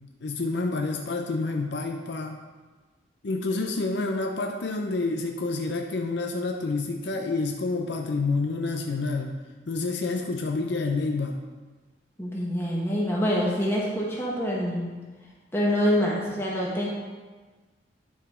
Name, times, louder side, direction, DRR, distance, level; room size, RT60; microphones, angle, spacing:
voice 1, 0.2-2.4 3.2-9.3 9.7-11.4, left 3 dB, 65° left, 3 dB, 0.5 m, -28 dB
voice 2, 12.2-14.8 15.5-16.9, equal, 15° left, -4 dB, 1.4 m, -26 dB
11.0 x 4.9 x 3.7 m, 1.3 s
head